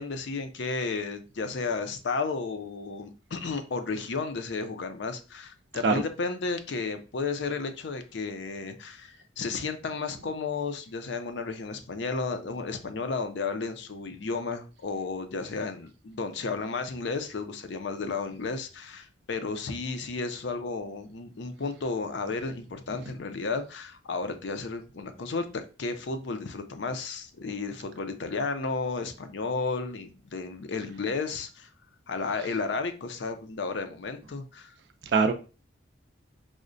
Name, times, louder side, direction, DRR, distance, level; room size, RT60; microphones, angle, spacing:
voice 1, 0.0-31.7 32.1-34.7, left 4 dB, 65° left, 0.5 m, -33 dB
voice 2, 5.8-6.1 23.0-23.1 32.4-32.5 35.1-35.3, right 4 dB, 60° right, 0.3 m, -23 dB
4.8 x 2.1 x 2.5 m
head